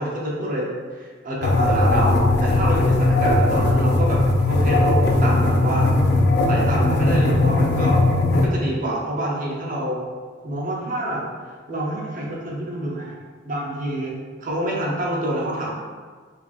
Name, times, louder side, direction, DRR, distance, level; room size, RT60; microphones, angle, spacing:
voice 1, 0.0-4.2 4.5-5.9 6.4-8.0 8.3-10.0 10.4-11.2 11.7-13.1 13.4-14.1 14.4-15.7, right 1 dB, 45° right, -4 dB, 0.7 m, -27 dB
sound 1, 1.4-8.5, left 2 dB, 60° left, 0.4 m, -18 dB
3.6 x 3.4 x 2.5 m, 1.6 s
head